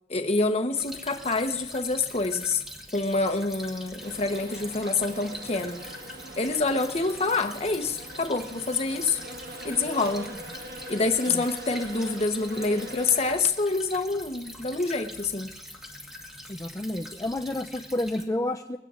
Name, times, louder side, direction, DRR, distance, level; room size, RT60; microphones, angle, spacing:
voice 1, 0.1-2.6 2.9-5.8 6.4-9.2 9.6-10.3 10.9-15.5, left 3 dB, 35° left, 6 dB, 0.9 m, -27 dB
Stream / Trickle dribble, 0.8-18.2, left 1 dB, 5° right, 1.5 m, -44 dB
sound 1, 4.0-13.4, right 1 dB, 55° right, 1.4 m, -42 dB
voice 2, 16.5-18.8, left 1 dB, 20° left, 4 dB, 0.4 m, -30 dB
22.0 x 17.5 x 2.5 m, 0.97 s
head